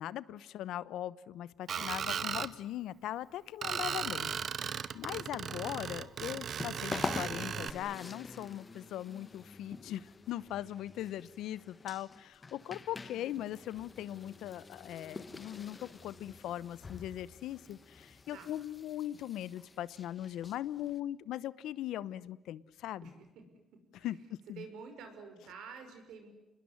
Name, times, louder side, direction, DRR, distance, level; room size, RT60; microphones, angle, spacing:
voice 1, 0.0-4.3 4.6-23.0 24.0-24.2 24.5-24.6, left 12 dB, 85° left, 19 dB, 0.9 m, -40 dB
Screech, 1.7-2.5 3.6-7.7, right 8 dB, 60° right, 1.1 m, -36 dB
sound 1, 5.9-21.0, left 4 dB, 30° left, 1.6 m, -46 dB
voice 2, 23.0-24.1 24.6-26.3, right 5 dB, 85° right, 6 dB, 5.9 m, -49 dB
28.0 x 21.0 x 9.8 m, 0.95 s
cardioid pair, 90°, 0 cm